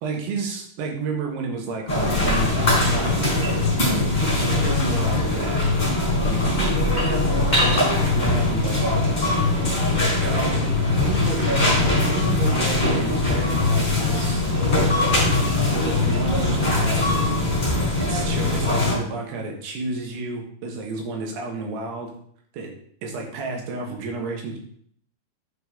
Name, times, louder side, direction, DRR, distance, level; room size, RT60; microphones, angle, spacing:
voice 1, 0.0-3.5 3.9-5.7 6.2-9.2 10.2-10.7 11.0-11.8 12.0-14.4 15.1-15.5 15.8-17.4 18.0-22.1 22.5-22.7 23.0-24.6, right 3 dB, 85° right, 2 dB, 3.4 m, -31 dB
sound 1, 1.9-19.0, left 2 dB, 15° left, 3.2 m, -21 dB
8.9 x 4.8 x 3.7 m, 0.63 s
omnidirectional pair, 4.6 m